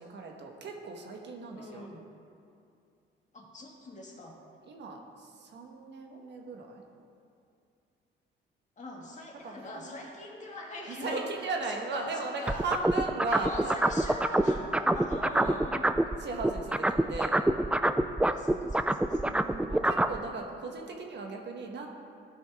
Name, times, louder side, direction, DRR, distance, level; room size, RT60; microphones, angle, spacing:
voice 1, 0.0-1.9 4.7-6.8 9.4-9.9 10.9-13.8 15.3-15.6 16.2-17.4 18.9-21.9, right 3 dB, 60° right, 2 dB, 1.3 m, -37 dB
voice 2, 1.5-2.0 3.3-4.4 6.1-6.2 8.8-11.3 11.7-12.6 13.3-16.0 18.3-19.2, left 2 dB, 35° left, -2 dB, 2.1 m, -42 dB
sound 1, 12.5-16.1 16.4-20.2, right 1 dB, 5° right, 0.3 m, -25 dB
15.5 x 5.4 x 3.6 m, 2.5 s
cardioid pair, 90°, 20 cm